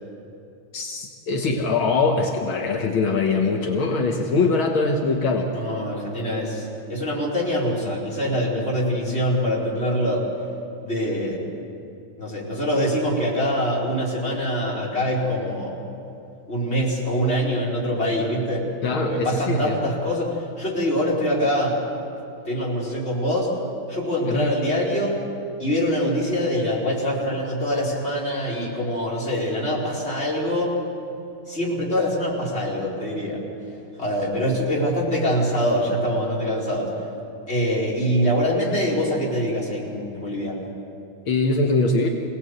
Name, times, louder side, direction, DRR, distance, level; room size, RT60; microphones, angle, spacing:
voice 1, 0.7-5.5 18.8-19.8 24.2-24.6 41.3-42.1, left 3 dB, 80° left, 2 dB, 2.2 m, -22 dB
voice 2, 5.5-10.3 10.8-11.4 12.2-15.8 16.5-18.7 19.1-21.8 22.4-23.5 23.9-25.2 25.6-30.8 31.5-33.4 34.0-36.9 37.5-40.6, equal, 30° left, -5 dB, 4.9 m, -24 dB
26.0 x 18.5 x 8.0 m, 2.8 s
omnidirectional pair, 2.3 m